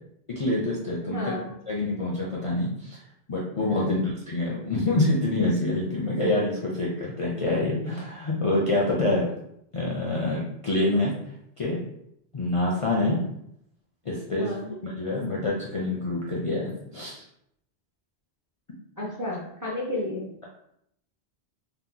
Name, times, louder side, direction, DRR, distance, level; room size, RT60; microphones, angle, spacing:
voice 1, 0.3-1.3 1.7-3.0 3.3-9.3 9.7-11.1 11.6-11.8 12.3-13.2 14.1-14.5 14.8-17.2, left 2 dB, 45° left, -4 dB, 0.4 m, -26 dB
voice 2, 1.0-1.5 3.7-4.1 14.3-14.8 19.0-20.3, left 1 dB, 25° right, -4 dB, 0.5 m, -32 dB
2.8 x 2.1 x 3.7 m, 0.75 s
omnidirectional pair, 1.1 m